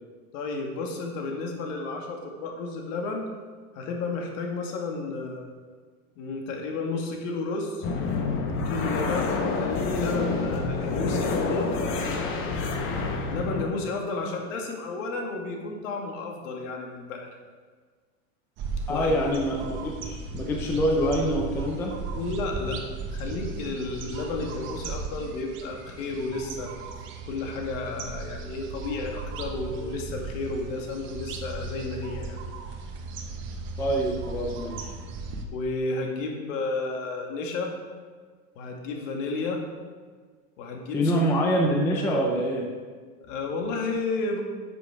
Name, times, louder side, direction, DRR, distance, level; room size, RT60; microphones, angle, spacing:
voice 1, 0.3-3.3 3.7-5.5 6.2-7.8 8.7-11.7 13.3-17.3 18.9-19.2 22.1-26.8 27.2-32.4 35.5-37.7 38.6-39.6 40.6-41.2 43.2-44.4, left 3 dB, 60° left, 2 dB, 2.0 m, -32 dB
sound 1, 7.8-13.6, left 4 dB, 30° left, 1.0 m, -28 dB
sound 2, 18.6-35.4, right 4 dB, 30° right, 0.9 m, -36 dB
voice 2, 18.9-21.9 33.8-34.9 40.9-42.7, equal, 5° left, 0 dB, 0.3 m, -25 dB
10.0 x 6.8 x 4.8 m, 1.5 s
supercardioid pair, 155°, 43 cm